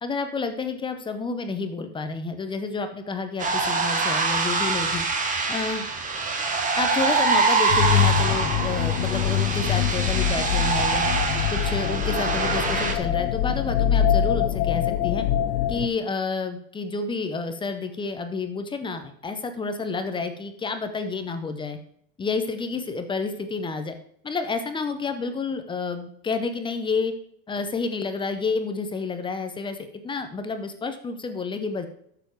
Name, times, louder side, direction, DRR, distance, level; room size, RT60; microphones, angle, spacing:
voice 1, 0.0-5.0 5.5-5.9 6.7-11.1 11.5-15.3 15.7-21.8 22.2-23.9 24.2-27.1 27.5-31.9, left 4 dB, 10° left, 8 dB, 0.7 m, -30 dB
sound 1, 3.4-12.9, right 4 dB, 15° right, 1.3 m, -25 dB
sound 2, 7.7-15.9, left 9 dB, 65° left, 1.0 m, -24 dB
12.0 x 7.0 x 4.6 m, 0.68 s
supercardioid pair, 160°, 45 cm